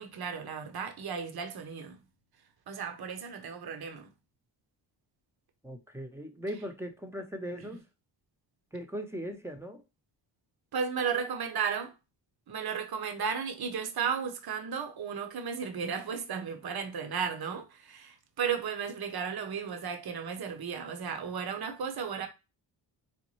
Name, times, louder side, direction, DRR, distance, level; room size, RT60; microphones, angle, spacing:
voice 1, 0.0-2.0 2.7-4.1 7.6-7.8 10.7-11.9 12.5-22.3, right 6 dB, 50° right, 0.9 m, -34 dB
voice 2, 5.6-7.8 8.7-9.8, equal, 5° right, 0.8 m, -39 dB
4.2 x 2.1 x 3.1 m
cardioid pair, 50°, 48 cm